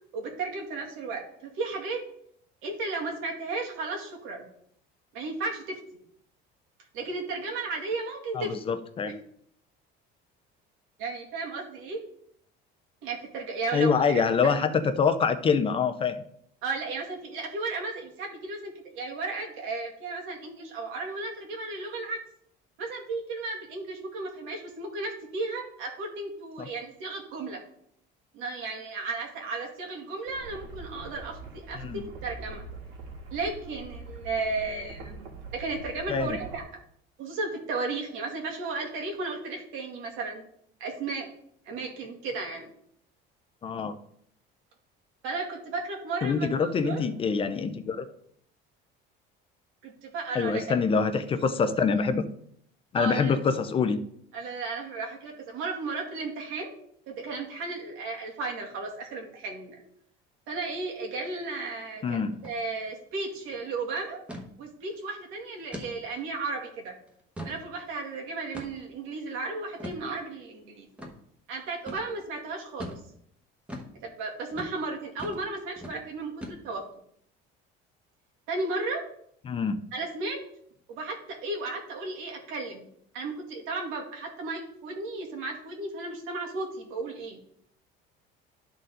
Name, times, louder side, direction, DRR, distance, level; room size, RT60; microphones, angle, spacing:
voice 1, 0.1-2.0 2.6-4.5 5.1-5.8 6.9-8.5 9.0-9.1 11.0-12.0 13.0-14.5 16.6-22.2 22.8-27.6 28.3-32.6 33.3-35.3 35.5-36.6 37.2-40.4 40.8-41.3 41.7-42.7 45.2-47.0 49.8-50.6 52.9-53.4 54.3-56.7 57.1-59.8 60.5-64.2 64.6-66.9 67.4-70.9 71.5-73.0 74.0-76.8 78.5-79.0 79.9-80.4 80.9-82.9 83.1-87.4, right 3 dB, 80° right, 1 dB, 2.3 m, -34 dB
voice 2, 8.3-9.1 13.7-16.2 26.6-26.7 31.8-32.0 36.1-36.4 43.6-43.9 46.2-48.1 50.3-52.3 52.9-54.0 62.0-62.4 79.5-79.8, left 5 dB, 25° left, 10 dB, 0.5 m, -25 dB
sound 1, 30.3-36.6, right 3 dB, 60° right, 2.3 m, -43 dB
sound 2, 62.3-62.6 62.9-63.0 63.3-63.6 64.3-64.5 65.0-65.1 65.7-65.9 66.4-66.5 67.1-67.6 68.5-68.9 69.8-70.0 71.0-71.1 71.9-72.1 72.8-73.0 73.7-73.9 74.5-74.7 75.2-75.5 75.8-76.0 76.4-76.9, equal, 5° right, 1.2 m, -40 dB
12.5 x 4.2 x 3.8 m, 0.67 s
cardioid pair, 150°, 21 cm